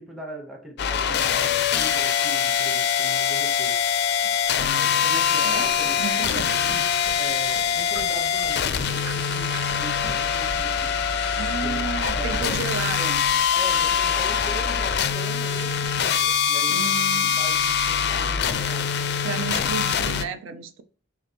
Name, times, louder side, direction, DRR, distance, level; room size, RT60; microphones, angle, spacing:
voice 1, 0.0-3.8 4.7-6.0 6.3-6.9 7.2-11.1 11.6-11.8 12.1-12.6 13.5-16.9 17.1-19.0 20.5-20.6, right 1 dB, ahead, 0.8 m, -40 dB
sound 1, 0.8-20.2, left 7 dB, 55° left, 0.4 m, -23 dB
sound 2, 4.4-16.4, right 1 dB, 30° right, 2.3 m, -43 dB
voice 2, 5.0-6.9 11.3-13.5 16.7-17.4 19.2-20.8, right 6 dB, 70° right, 0.4 m, -33 dB
6.5 x 2.4 x 2.8 m
head